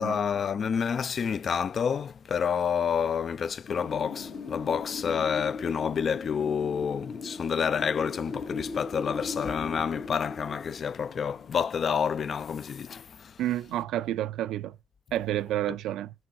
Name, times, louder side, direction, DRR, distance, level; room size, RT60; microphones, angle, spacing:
voice 1, 0.0-13.3, left 7 dB, 50° left, 0.3 m, -29 dB
Wind, 3.7-12.4, left 4 dB, 70° left, 1.8 m, -39 dB
voice 2, 13.4-14.8 15.1-16.1, right 13 dB, 85° right, 0.4 m, -29 dB
6.3 x 4.4 x 3.9 m
cardioid pair, 90°, 0 cm